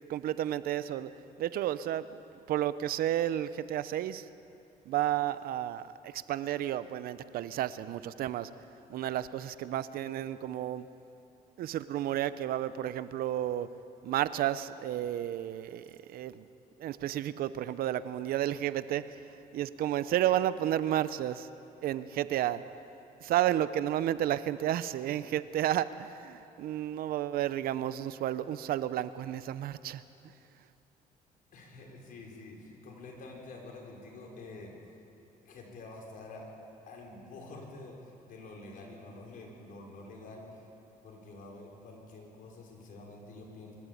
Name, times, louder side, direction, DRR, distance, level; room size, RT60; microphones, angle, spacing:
voice 1, 0.1-1.1 1.4-2.0 2.5-4.2 4.9-5.8 6.3-8.5 8.9-10.8 11.6-13.7 14.0-15.8 16.1-16.4 16.8-19.0 19.5-21.5 21.8-22.6 23.2-30.0, right 12 dB, 75° right, 14 dB, 0.7 m, -31 dB
voice 2, 31.5-34.7 35.4-36.5 36.9-40.6 41.0-43.7, left 2 dB, 65° left, -1 dB, 5.2 m, -48 dB
24.5 x 13.0 x 8.6 m, 2.9 s
cardioid pair, 90°, 16 cm